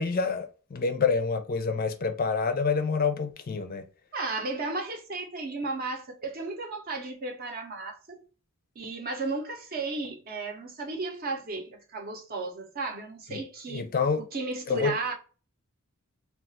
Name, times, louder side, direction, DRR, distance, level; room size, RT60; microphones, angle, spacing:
voice 1, 0.0-3.8 13.7-14.2 14.7-14.9, left 5 dB, 45° left, 0.4 m, -27 dB
voice 2, 4.1-8.2 8.8-13.8 14.2-15.1, right 3 dB, 45° right, 0.7 m, -34 dB
2.4 x 2.3 x 3.8 m
head